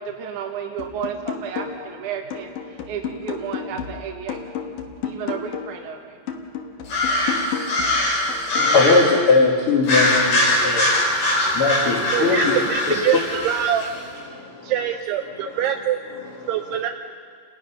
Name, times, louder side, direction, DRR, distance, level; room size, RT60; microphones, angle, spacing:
voice 1, 0.0-4.4 5.0-6.0, right 7 dB, 60° right, 1 dB, 2.3 m, -32 dB
sound 1, 0.8-2.0 2.3-5.8 6.3-8.8, left 7 dB, 60° left, 2.5 m, -32 dB
sound 2, 6.8-9.1 9.8-13.9, left 1 dB, 80° left, 9.4 m, -22 dB
voice 2, 8.6-12.5 13.1-13.2 14.3-14.7 15.2-15.6 16.1-16.8, left 4 dB, 45° left, -4 dB, 2.0 m, -21 dB
voice 3, 12.0-13.9 14.6-16.0 16.5-16.9, right 10 dB, 80° right, 5 dB, 2.7 m, -24 dB
29.0 x 19.5 x 5.8 m, 2.1 s
omnidirectional pair, 4.8 m